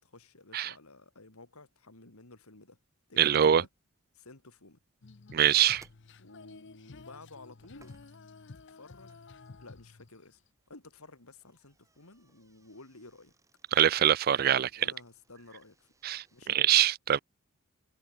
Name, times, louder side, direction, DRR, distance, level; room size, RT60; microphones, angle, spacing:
voice 1, 0.0-2.8 3.1-3.2 3.5-3.7 4.1-4.8 6.2-7.9 8.7-9.2 9.6-10.4 10.7-13.3 14.8-15.9 16.3-16.6, left 2 dB, 80° left, 3.2 m, -53 dB
sound 1, 1.7-16.5, right 2 dB, 15° right, 6.9 m, -69 dB
voice 2, 3.2-3.6 5.3-5.8 13.7-14.9 16.0-17.2, right 10 dB, 40° right, 0.3 m, -24 dB
Female singing, 5.0-10.5, left 3 dB, 50° left, 0.7 m, -52 dB
head